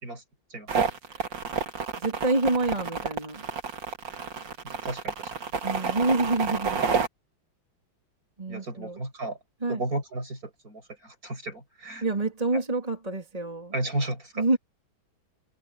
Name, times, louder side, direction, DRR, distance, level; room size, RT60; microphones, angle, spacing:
sound 1, 0.7-7.1, right 5 dB, 60° right, 2.8 m, -29 dB
voice 1, 2.0-3.4 5.6-6.8 8.4-9.0 9.6-9.8 12.0-13.7 14.4-14.6, right 2 dB, 15° right, 3.3 m, -27 dB
voice 2, 4.8-5.3 8.5-9.4 9.7-12.0 12.5-12.6 13.7-14.5, right 2 dB, 40° right, 6.4 m, -33 dB
omnidirectional pair, 2.3 m